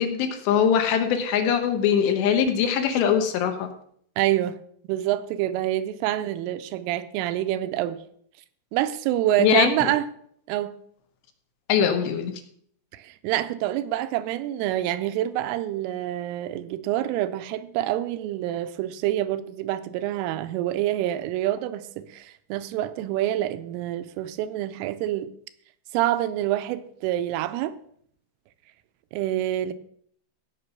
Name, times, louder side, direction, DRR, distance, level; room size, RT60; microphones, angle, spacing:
voice 1, 0.0-3.7 9.4-9.9 11.7-12.3, left 8 dB, 70° left, 2.9 m, -22 dB
voice 2, 4.2-4.6 4.9-8.0 8.7-10.1 10.5-10.7 12.9-25.3 25.9-27.8 29.1-29.7, right 13 dB, 85° right, 3.2 m, -27 dB
16.5 x 6.0 x 5.9 m
omnidirectional pair, 5.9 m